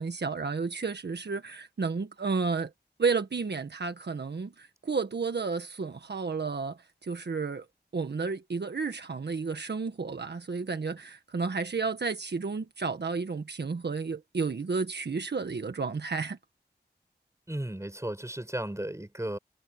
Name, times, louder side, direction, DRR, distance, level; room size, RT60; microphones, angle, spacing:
voice 1, 0.0-2.7 3.0-7.6 7.9-16.4, right 4 dB, 70° right, 1.6 m, -32 dB
voice 2, 17.5-19.4, right 1 dB, 15° right, 7.9 m, -35 dB
cardioid pair, 50°, 18 cm